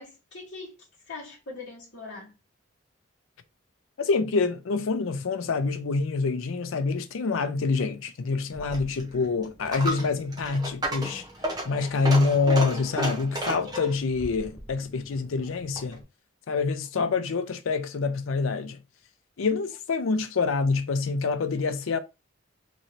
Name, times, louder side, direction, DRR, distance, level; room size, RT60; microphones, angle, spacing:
voice 1, 0.0-2.4, left 3 dB, 60° left, 1.1 m, -42 dB
voice 2, 4.0-11.2 11.6-16.0 16.5-18.8 19.4-22.0, left 4 dB, 80° left, 0.5 m, -26 dB
Coin (dropping), 8.5-16.0, right 1 dB, 20° right, 0.7 m, -34 dB
3.1 x 2.7 x 2.7 m
head